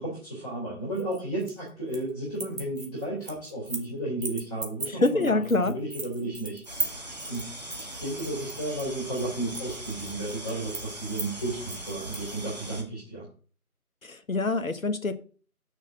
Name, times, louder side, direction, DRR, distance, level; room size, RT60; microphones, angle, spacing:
voice 1, 0.0-13.3, right 1 dB, 10° left, 3.0 m, -33 dB
sound 1, 0.9-2.1 2.3-3.9 4.2-12.3, right 3 dB, 60° right, 2.4 m, -38 dB
voice 2, 5.0-5.7 14.0-15.2, left 2 dB, 60° left, 1.2 m, -25 dB
sound 2, 6.7-12.8, right 1 dB, 30° right, 1.3 m, -40 dB
6.3 x 5.2 x 7.0 m
figure-of-eight pair, 165°, 45 cm